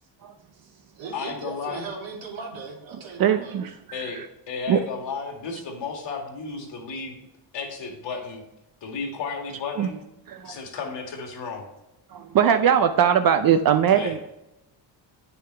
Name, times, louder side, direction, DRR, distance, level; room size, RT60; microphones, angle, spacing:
voice 1, 0.5-3.6, right 4 dB, 80° right, -1 dB, 2.6 m, -38 dB
voice 2, 1.1-1.9 3.9-7.2 7.5-8.4 8.8-10.0 10.4-11.6 13.9-14.1, left 5 dB, 70° left, 2 dB, 2.2 m, -33 dB
voice 3, 3.2-4.3 4.7-4.8 9.8-9.9 10.3-10.6 12.1-14.2, right 8 dB, 50° right, 8 dB, 0.5 m, -21 dB
8.7 x 6.9 x 3.3 m, 0.91 s
cardioid pair, 125°, 45 cm